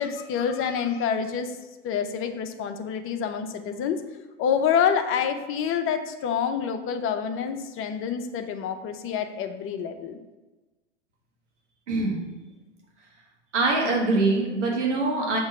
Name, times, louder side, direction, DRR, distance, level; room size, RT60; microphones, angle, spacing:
voice 1, 0.0-1.5 1.8-4.0 4.4-10.2, left 7 dB, 35° left, 7 dB, 0.7 m, -27 dB
voice 2, 13.5-15.4, right 3 dB, 90° right, -2 dB, 1.8 m, -23 dB
6.4 x 3.0 x 5.8 m, 1.1 s
hypercardioid pair, 100°, 35 cm